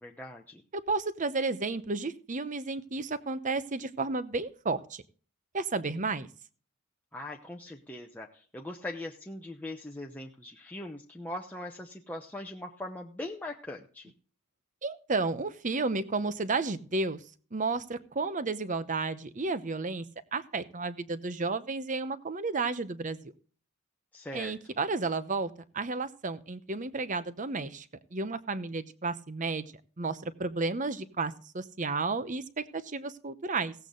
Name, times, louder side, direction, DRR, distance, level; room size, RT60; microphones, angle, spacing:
voice 1, 0.0-0.6 7.1-14.1 24.1-24.5, left 1 dB, 10° left, 1 dB, 0.8 m, -41 dB
voice 2, 0.7-5.0 5.5-6.3 14.8-17.2 17.5-20.0 20.3-23.3 24.3-33.7, right 3 dB, 35° right, 13 dB, 0.9 m, -32 dB
16.5 x 8.2 x 3.9 m, 0.42 s
head